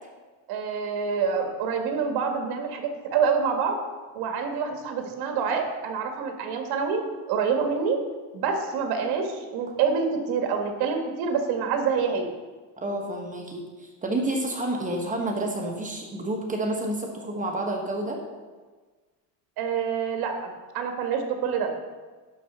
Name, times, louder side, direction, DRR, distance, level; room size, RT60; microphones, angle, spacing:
voice 1, 0.5-3.8 4.1-8.0 8.3-12.3 19.6-21.7, right 6 dB, 70° right, 5 dB, 1.8 m, -27 dB
voice 2, 12.8-18.2, right 1 dB, 20° right, 1 dB, 1.2 m, -29 dB
11.5 x 4.2 x 6.8 m, 1.3 s
cardioid pair, 140°, 39 cm